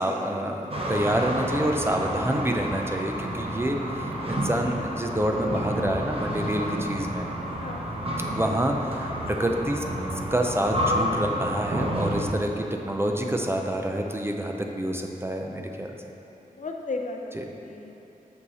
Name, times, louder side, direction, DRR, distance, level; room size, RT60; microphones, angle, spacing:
voice 1, 0.0-3.8 4.3-7.3 8.3-9.8 10.3-16.0, right 1 dB, 15° right, 2 dB, 0.5 m, -27 dB
sound 1, 0.7-12.3, equal, 40° right, 0.9 m, -30 dB
voice 2, 7.5-8.1 16.5-17.9, left 3 dB, 55° left, 2 dB, 0.6 m, -35 dB
6.3 x 5.5 x 4.1 m, 2.9 s
wide cardioid pair, 90°, 15 cm